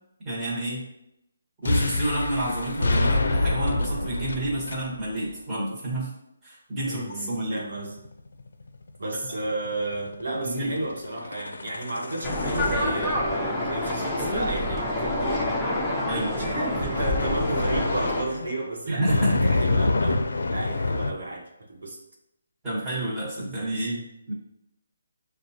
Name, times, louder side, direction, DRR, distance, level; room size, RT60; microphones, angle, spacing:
voice 1, 0.2-0.8 1.6-6.1 6.4-7.6 10.4-10.8 16.1-16.3 18.9-19.5 22.6-24.3, right 1 dB, 10° right, -9 dB, 1.3 m, -29 dB
sound 1, 1.6-5.3 7.1-15.6 16.9-18.6 19.1-21.1, left 2 dB, 75° left, 0.4 m, -27 dB
voice 2, 6.8-8.0 9.0-15.6 16.3-22.0 23.5-23.9, right 2 dB, 75° right, -1 dB, 1.1 m, -32 dB
sound 2, 12.2-18.2, left 1 dB, 5° left, 0.6 m, -27 dB
6.3 x 2.3 x 2.7 m, 0.83 s
hypercardioid pair, 165°, 0 cm